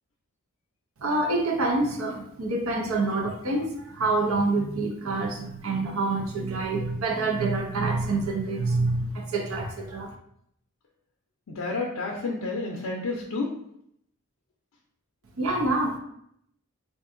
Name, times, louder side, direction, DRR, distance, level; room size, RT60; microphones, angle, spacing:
voice 1, 1.0-10.1 15.4-16.0, right 2 dB, 75° right, 2 dB, 0.6 m, -27 dB
voice 2, 11.5-13.5, left 3 dB, 85° left, -1 dB, 0.5 m, -30 dB
3.6 x 2.5 x 2.5 m, 0.72 s
head